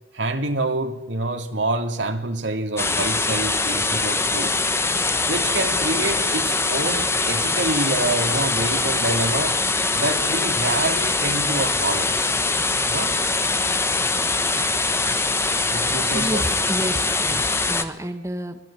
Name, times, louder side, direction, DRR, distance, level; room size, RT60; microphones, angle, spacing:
voice 1, 0.1-4.6 5.2-9.6 9.9-12.3 12.9-13.1 15.7-16.4, right 2 dB, 90° right, 6 dB, 2.8 m, -27 dB
sound 1, 2.8-17.8, left 3 dB, 15° left, 1.3 m, -22 dB
voice 2, 16.1-18.6, equal, 15° right, 5 dB, 1.9 m, -29 dB
25.0 x 20.0 x 8.8 m, 0.93 s
head